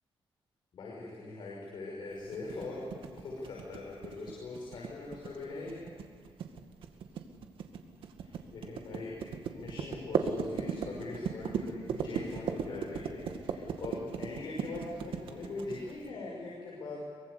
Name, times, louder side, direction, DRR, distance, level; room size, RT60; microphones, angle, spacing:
voice 1, 0.7-5.8 8.2-9.1 9.5-17.0, left 2 dB, 60° left, -3 dB, 6.1 m, -41 dB
sound 1, 2.3-16.1, right 7 dB, 75° right, 2.2 m, -37 dB
24.0 x 23.5 x 8.4 m, 2.2 s
cardioid pair, 150°, 9 cm